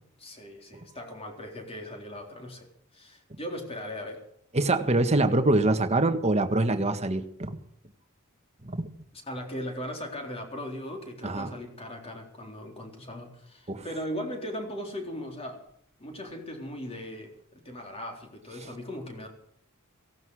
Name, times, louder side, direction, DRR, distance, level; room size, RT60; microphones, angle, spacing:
voice 1, 0.2-4.2 9.3-15.6 16.0-19.3, equal, 30° left, 2 dB, 3.9 m, -38 dB
voice 2, 4.5-7.6 8.6-8.9 11.2-11.5 13.7-13.8, right 2 dB, 30° right, 7 dB, 1.5 m, -24 dB
17.5 x 17.0 x 4.9 m, 0.70 s
head